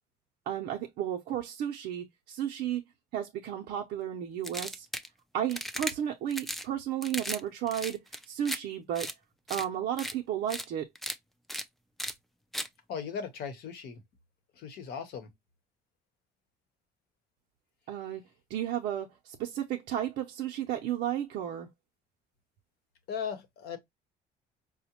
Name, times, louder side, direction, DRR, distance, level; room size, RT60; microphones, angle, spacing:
voice 1, 0.5-2.8 3.1-4.9 5.3-8.0 8.3-9.1 9.5-10.9 17.9-18.2 18.5-21.7, right 10 dB, 75° right, 0.5 m, -33 dB
sound 1, 4.4-5.1 5.5-5.9 6.3-6.7 7.0-7.4 7.7-8.6 9.0-9.1 9.5-9.7 10.0-10.1 10.5-10.7 11.0-11.2 11.5-11.6 12.0-12.1 12.5-12.7, equal, ahead, 0.3 m, -36 dB
voice 2, 12.9-14.0 14.6-15.3 23.1-23.8, left 7 dB, 70° left, 0.9 m, -37 dB
4.7 x 2.1 x 2.8 m
cardioid pair, 110°, 17 cm